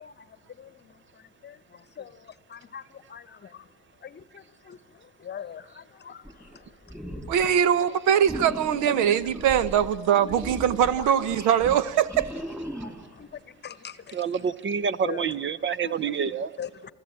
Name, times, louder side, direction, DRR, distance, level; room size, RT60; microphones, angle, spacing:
voice 1, 0.0-3.7 4.0-7.5 8.8-9.1 9.7-9.9 11.0-11.1 12.8-14.3 15.0-15.4 15.8-16.9, left 8 dB, 35° left, 1.0 m, -43 dB
sound 1, 6.2-6.6 6.9-7.5 8.2-13.2, equal, 10° right, 3.6 m, -38 dB
voice 2, 7.3-12.3, right 9 dB, 70° right, 1.0 m, -22 dB
voice 3, 14.1-16.5, right 7 dB, 40° right, 0.7 m, -27 dB
27.0 x 14.5 x 8.9 m
supercardioid pair, 75°, 31 cm